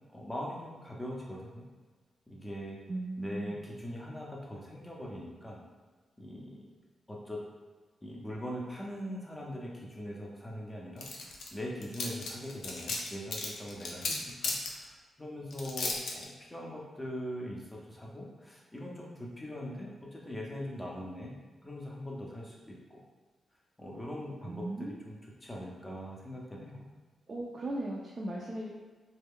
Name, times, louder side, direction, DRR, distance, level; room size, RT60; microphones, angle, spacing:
voice 1, 0.1-1.7 2.3-2.8 3.2-5.6 6.2-6.6 7.1-7.4 8.0-21.3 21.6-23.0 23.8-26.9, equal, 10° left, -3 dB, 0.6 m, -41 dB
voice 2, 2.9-3.6 14.1-14.4 24.5-24.9 27.3-28.7, right 1 dB, 35° right, -3 dB, 0.3 m, -37 dB
sound 1, 11.0-11.5 11.8-14.7 15.5-16.2, left 3 dB, 90° left, 0.5 m, -34 dB
3.2 x 2.2 x 3.5 m, 1.4 s
wide cardioid pair, 145°, 0 cm